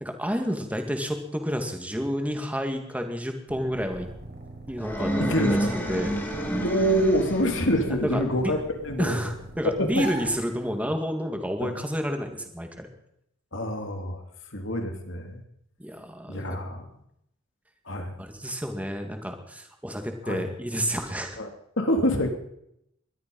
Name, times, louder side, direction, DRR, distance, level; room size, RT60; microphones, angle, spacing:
voice 1, 0.0-4.1 4.7-6.2 7.9-8.5 9.0-12.9 15.8-16.5 18.2-21.4, equal, 5° right, 4 dB, 2.3 m, -30 dB
sound 1, 3.5-11.0, right 1 dB, 60° right, 4.7 m, -42 dB
sound 2, 4.8-7.7, equal, 10° left, 3.5 m, -29 dB
voice 2, 5.2-5.7 6.6-8.6 8.8-9.2 9.6-9.9 11.6-11.7 13.5-14.2 14.5-15.4 16.3-16.8 17.9-18.1 20.2-20.4 21.4-21.5 21.8-22.3, equal, 65° left, 4 dB, 3.0 m, -26 dB
20.5 x 12.5 x 5.5 m, 0.76 s
head